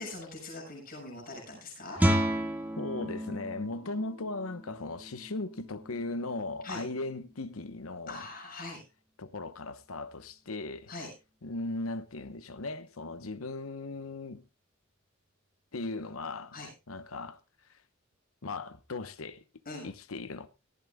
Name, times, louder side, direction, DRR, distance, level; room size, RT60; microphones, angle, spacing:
voice 1, 0.0-2.2 6.6-6.8 8.1-8.8 10.9-11.1 16.5-16.7 19.6-19.9, left 2 dB, 45° left, 6.6 m, -42 dB
Guitar, 2.0-7.5, equal, 10° right, 1.5 m, -33 dB
voice 2, 2.8-8.2 9.2-10.9 11.4-14.4 15.7-16.5 16.9-17.4 18.4-19.4 19.8-20.5, left 2 dB, 90° left, 1.0 m, -37 dB
18.0 x 14.5 x 2.3 m
head